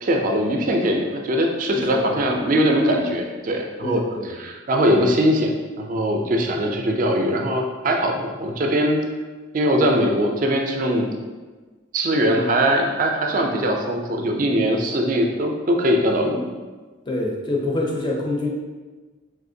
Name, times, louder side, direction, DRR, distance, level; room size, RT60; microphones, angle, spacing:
voice 1, 0.0-5.5 5.8-9.0 9.5-11.1 11.9-16.5, equal, 40° right, 2 dB, 0.3 m, -21 dB
voice 2, 1.7-2.2 3.8-4.3 17.1-18.5, left 2 dB, 25° left, -1 dB, 0.4 m, -26 dB
3.5 x 2.8 x 2.6 m, 1.3 s
head